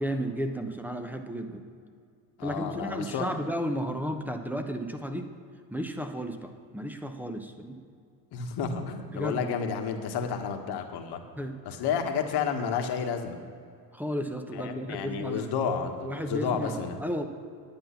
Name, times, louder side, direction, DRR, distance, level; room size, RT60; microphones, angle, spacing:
voice 1, 0.0-1.6 2.4-5.3 5.7-7.8 9.1-9.5 11.4-11.6 13.9-15.5 16.0-17.3, equal, 5° right, 6 dB, 0.9 m, -33 dB
voice 2, 2.4-3.3 8.3-11.2 11.6-13.4 14.5-17.0, left 6 dB, 50° left, 5 dB, 1.5 m, -31 dB
10.5 x 9.0 x 5.8 m, 2.3 s
supercardioid pair, 90°, 50 cm